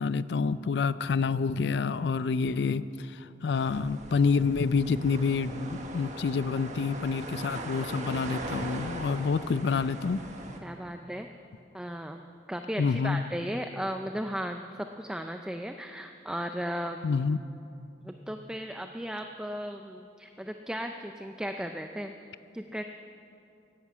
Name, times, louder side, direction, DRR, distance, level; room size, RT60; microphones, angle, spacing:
voice 1, 0.0-10.2 12.8-13.2 17.0-17.4, left 5 dB, 70° left, 15 dB, 0.4 m, -28 dB
sound 1, 3.5-10.6, right 2 dB, 45° right, 1.4 m, -40 dB
voice 2, 10.6-11.3 11.7-17.0 18.0-22.1 22.5-22.8, equal, 5° right, 5 dB, 0.4 m, -36 dB
13.5 x 11.0 x 8.5 m, 2.7 s
head